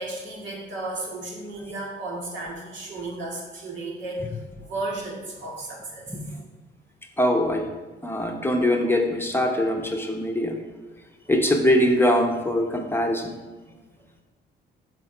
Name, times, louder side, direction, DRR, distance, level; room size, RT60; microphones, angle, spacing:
voice 1, 0.0-6.1 9.8-9.9 13.7-13.9, right 2 dB, 70° right, -2 dB, 2.1 m, -34 dB
voice 2, 7.2-7.6 8.0-10.6 11.3-13.4, left 1 dB, 10° left, 1 dB, 0.8 m, -22 dB
7.6 x 3.8 x 5.0 m, 1.2 s
cardioid pair, 90°, 20 cm